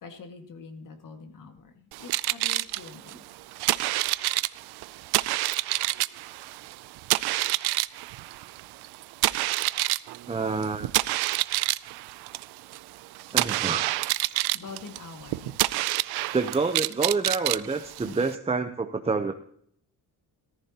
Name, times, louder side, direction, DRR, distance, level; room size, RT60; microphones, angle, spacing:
voice 1, 0.0-3.2 14.5-15.6 18.0-18.2, left 5 dB, 55° left, 6 dB, 1.9 m, -44 dB
sound 1, 1.9-18.3, right 18 dB, 85° right, 0.5 m, -28 dB
voice 2, 10.3-10.9 13.3-14.0 16.3-19.3, right 4 dB, 15° right, 7 dB, 0.7 m, -28 dB
14.0 x 14.0 x 2.9 m, 0.64 s
cardioid pair, 105°, 38 cm